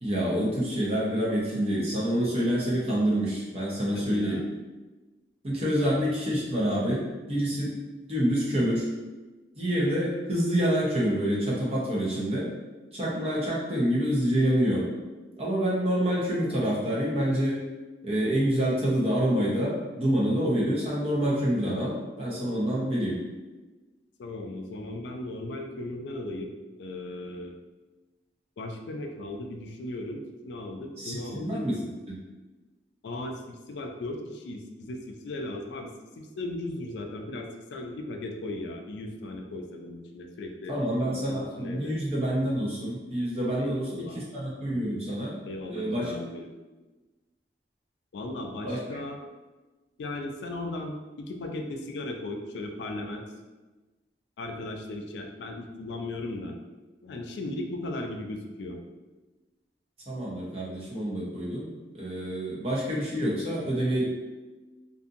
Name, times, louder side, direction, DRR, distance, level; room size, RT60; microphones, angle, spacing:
voice 1, 0.0-4.4 5.4-7.0 7.3-7.7 8.1-8.9 9.6-12.5 12.9-14.9 15.4-17.6 18.0-23.2 31.0-31.8 32.1-32.2 40.7-45.4 45.7-46.1 48.6-48.8 60.1-64.2, equal, 35° right, -6 dB, 0.7 m, -27 dB
voice 2, 3.9-4.4 24.2-26.5 26.8-27.5 28.6-31.7 33.0-40.8 41.0-42.0 43.6-44.2 45.5-46.5 48.1-49.2 50.0-53.2 54.4-56.6 57.0-58.8, left 2 dB, 70° left, 3 dB, 0.3 m, -37 dB
2.6 x 2.5 x 2.5 m, 1.2 s
head